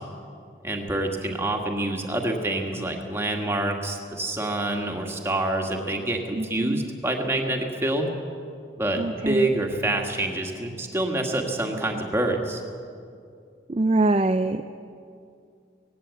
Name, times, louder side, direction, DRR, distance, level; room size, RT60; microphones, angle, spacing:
voice 1, 0.6-8.1 8.8-12.6, right 1 dB, 15° right, 2 dB, 1.8 m, -27 dB
voice 2, 6.4-6.9 9.0-9.5 13.7-14.7, right 2 dB, 30° right, 8 dB, 0.4 m, -24 dB
18.0 x 17.5 x 8.2 m, 2.4 s
head